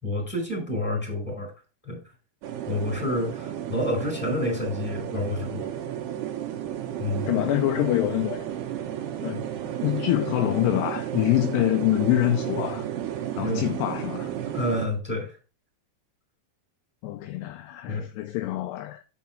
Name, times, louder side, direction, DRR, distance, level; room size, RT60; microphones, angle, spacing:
voice 1, 0.0-1.5 1.8-2.0 2.7-5.7 7.0-7.3 13.4-13.7 14.5-15.4 17.9-18.0, left 1 dB, ahead, 3.8 m, -29 dB
sound 1, 2.4-14.9, right 10 dB, 70° right, 2.9 m, -33 dB
voice 2, 7.3-8.5 9.2-9.5 9.8-12.9 13.4-14.3 17.0-19.0, left 16 dB, 80° left, 2.5 m, -25 dB
8.6 x 6.1 x 4.3 m
omnidirectional pair, 5.4 m